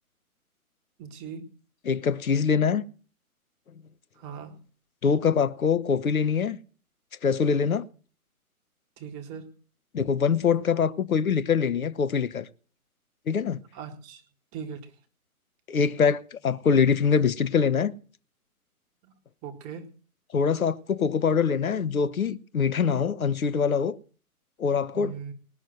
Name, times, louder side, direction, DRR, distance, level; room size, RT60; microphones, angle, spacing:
voice 1, 1.0-1.5 4.1-4.6 9.0-9.5 13.7-14.2 14.5-14.9 19.0-19.1 19.4-19.9 24.9-25.3, right 7 dB, 15° right, 0.9 m, -39 dB
voice 2, 1.8-2.8 5.0-6.6 7.2-7.8 9.9-12.5 13.3-13.6 15.7-17.9 20.3-24.0 24.6-25.1, left 6 dB, 70° left, 1.1 m, -24 dB
19.0 x 6.4 x 7.8 m
figure-of-eight pair, 135°, 44 cm